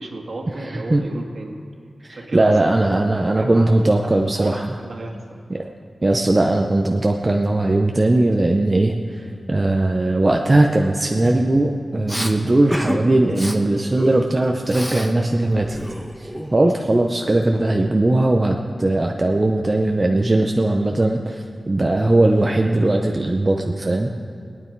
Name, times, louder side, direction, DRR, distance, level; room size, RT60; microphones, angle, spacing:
voice 1, 0.0-1.6 2.1-3.7 4.0-4.5 4.8-5.2, right 2 dB, 60° right, 1 dB, 1.8 m, -33 dB
voice 2, 2.0-4.7 5.5-5.7 6.0-15.8 16.2-24.1, right 2 dB, 30° right, 2 dB, 0.7 m, -19 dB
Respiratory sounds, 12.1-12.3 12.7-13.0 13.3-13.6 14.0-15.1 15.4-16.8, equal, ahead, 1.0 m, -29 dB
21.5 x 9.5 x 4.6 m, 2.3 s
wide cardioid pair, 120°, 0 cm